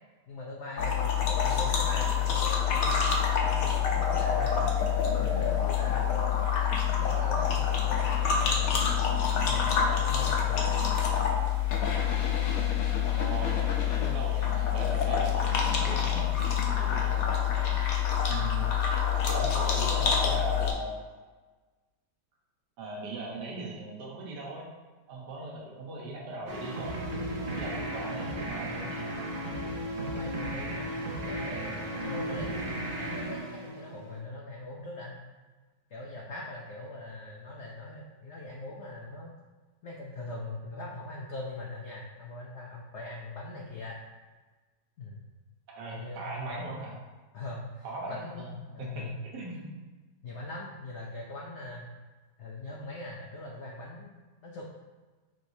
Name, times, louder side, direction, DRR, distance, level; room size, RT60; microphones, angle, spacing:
voice 1, 0.3-9.0 9.5-9.7 10.0-10.8 30.0-32.6 33.0-35.2 35.9-39.3 39.8-44.0 45.0-45.2 45.9-46.6 47.3-49.2 50.2-51.9 52.4-54.7, left 2 dB, 85° left, -2 dB, 0.6 m, -41 dB
sound 1, 0.8-20.7, left 8 dB, 65° left, 1.0 m, -27 dB
voice 2, 13.1-16.3 16.7-17.8 18.3-18.8 19.3-21.0 22.8-24.7 25.1-26.9 27.6-29.2 32.3-32.5 45.7-47.0 47.8-48.5 48.8-49.0 49.3-49.7, right 2 dB, 70° right, -3 dB, 1.6 m, -39 dB
sound 2, 26.5-34.2, right 1 dB, 85° right, 0.4 m, -35 dB
6.1 x 3.1 x 2.7 m, 1.3 s
omnidirectional pair, 1.9 m